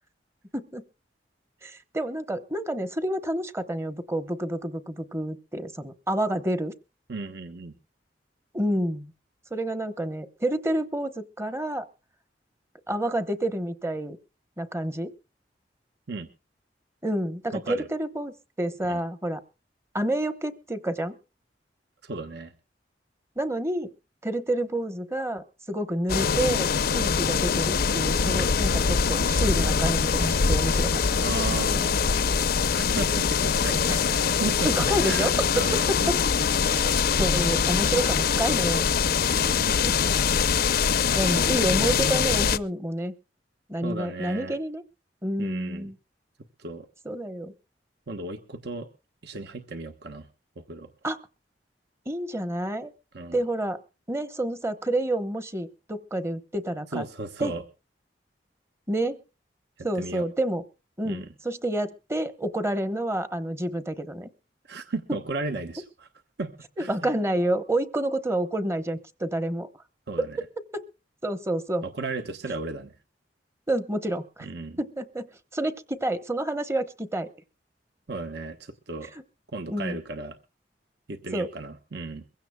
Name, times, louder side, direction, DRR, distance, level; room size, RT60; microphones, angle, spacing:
voice 1, 0.5-0.8 1.6-6.7 8.5-9.1 9.5-11.9 12.9-14.2 14.6-15.1 17.0-19.4 19.9-21.2 23.4-23.9 24.2-31.0 33.9-34.0 34.6-36.2 36.7-38.9 39.7-40.0 41.1-43.1 43.7-44.8 45.2-46.0 47.0-47.5 51.0-51.2 52.1-52.9 53.3-53.8 54.1-57.1 57.4-57.5 58.9-59.2 59.8-60.6 61.0-64.3 65.1-65.2 66.8-69.7 70.6-70.8 71.2-71.8 73.7-74.5 74.8-77.3 79.7-80.0 81.3-81.5, right 1 dB, 15° right, 11 dB, 0.9 m, -29 dB
voice 2, 7.1-7.7 16.1-16.3 17.5-17.9 18.8-19.0 22.0-22.5 31.2-31.9 32.7-34.7 35.0-35.9 39.3-39.8 43.8-44.6 45.4-45.9 46.6-46.9 48.1-48.9 49.2-50.3 50.6-50.9 53.1-53.4 56.9-57.6 60.0-60.3 61.0-61.3 64.7-66.1 66.4-66.5 66.8-67.1 70.1-70.4 71.8-72.9 74.4-74.8 78.1-79.1 79.5-80.4 81.1-82.2, right 3 dB, 65° right, 7 dB, 1.0 m, -35 dB
sound 1, 26.1-42.6, left 6 dB, 60° left, 0.6 m, -23 dB
22.5 x 16.0 x 2.2 m, 0.31 s
head